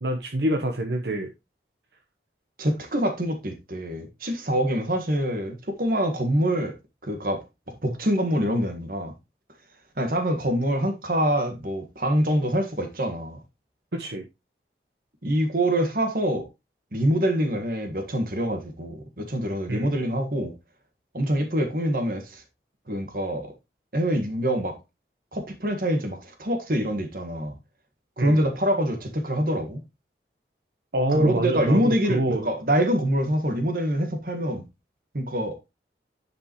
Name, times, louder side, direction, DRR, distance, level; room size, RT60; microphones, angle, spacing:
voice 1, 0.0-1.3 13.9-14.3 19.7-19.9 28.2-28.4 30.9-32.5, right 1 dB, 70° right, 1.0 m, -26 dB
voice 2, 2.6-6.7 7.0-9.1 10.0-13.4 15.2-16.5 16.9-20.5 21.1-22.4 22.9-23.5 23.9-24.8 25.3-27.5 28.2-29.8 31.1-34.6 35.1-35.6, equal, 50° right, 1.6 m, -25 dB
10.0 x 5.2 x 3.0 m
head